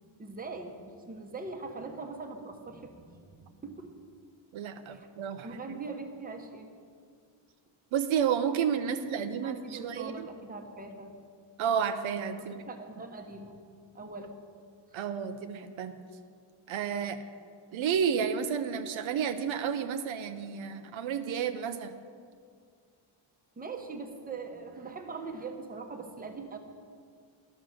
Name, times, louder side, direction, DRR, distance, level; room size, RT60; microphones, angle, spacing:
voice 1, 0.2-4.0 4.9-5.1 5.4-6.7 8.9-11.2 12.4-13.6 13.9-14.4 14.9-15.0 23.6-26.6, right 3 dB, 20° right, 4 dB, 0.9 m, -42 dB
voice 2, 4.5-5.6 7.9-10.3 11.6-12.6 14.9-16.0 16.7-17.2 17.7-21.9, right 7 dB, 75° right, 9 dB, 0.7 m, -31 dB
12.0 x 6.3 x 6.3 m, 2.1 s
cardioid pair, 130°, 48 cm